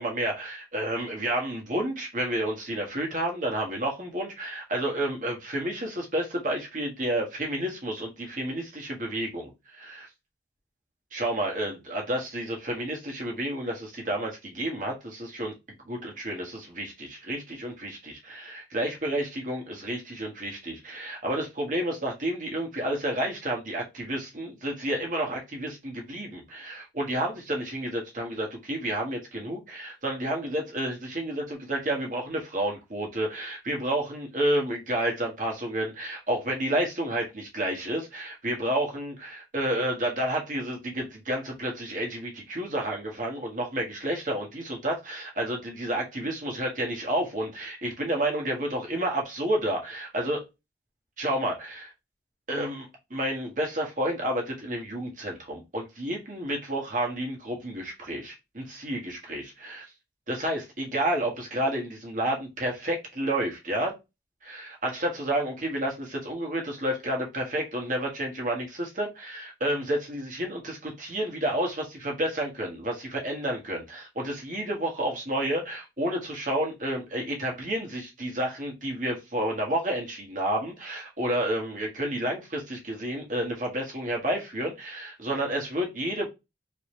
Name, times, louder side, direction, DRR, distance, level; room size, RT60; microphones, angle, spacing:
voice 1, 0.0-10.1 11.1-50.4 51.2-51.9 52.5-59.8 60.3-63.9 64.4-86.3, right 1 dB, 45° right, 1.5 m, -30 dB
4.0 x 3.5 x 3.2 m
head